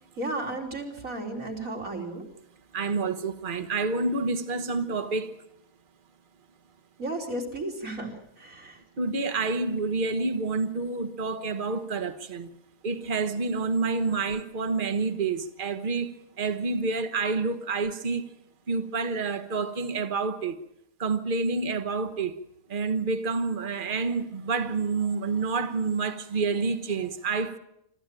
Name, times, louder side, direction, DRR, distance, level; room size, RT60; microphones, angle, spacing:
voice 1, 0.2-2.2 7.0-8.8, right 2 dB, 75° right, 3.8 m, -34 dB
voice 2, 2.7-5.4 9.0-12.5 12.8-18.3 18.7-20.6 21.0-22.4 22.7-27.6, right 4 dB, 40° right, 1.4 m, -28 dB
25.0 x 14.0 x 9.0 m
omnidirectional pair, 1.4 m